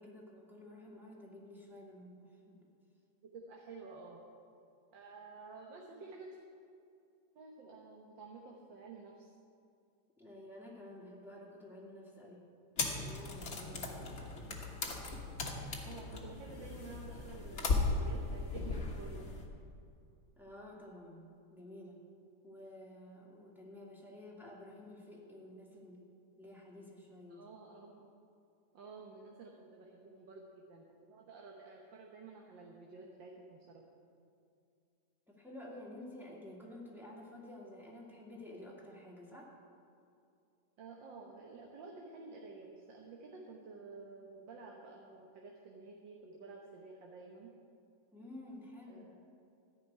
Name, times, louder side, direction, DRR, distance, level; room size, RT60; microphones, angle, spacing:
voice 1, 0.0-2.5 10.2-12.4 12.9-14.4 20.4-22.0 22.4-26.0 26.4-27.4 35.3-39.5 48.1-49.1, left 1 dB, ahead, -5 dB, 2.3 m, -51 dB
voice 2, 3.3-4.2 4.9-6.4 7.4-9.3 15.8-19.2 27.3-28.1 28.7-33.8 40.8-47.5 48.9-49.1, right 4 dB, 85° right, 0 dB, 1.9 m, -51 dB
sound 1, 12.8-19.5, left 3 dB, 40° left, 1.5 m, -37 dB
14.0 x 6.0 x 9.5 m, 2.5 s
omnidirectional pair, 2.0 m